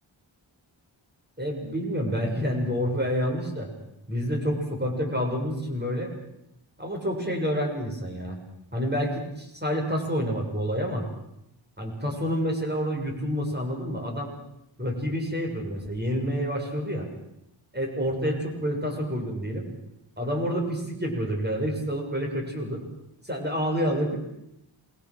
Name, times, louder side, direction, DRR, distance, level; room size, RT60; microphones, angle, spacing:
voice 1, 1.4-3.7 4.1-6.1 6.8-8.4 8.7-11.0 11.8-14.3 14.8-17.1 17.7-19.6 20.2-22.8 23.2-24.2, equal, 20° right, 1 dB, 6.9 m, -28 dB
28.0 x 20.5 x 6.6 m, 0.83 s
wide cardioid pair, 60°, 47 cm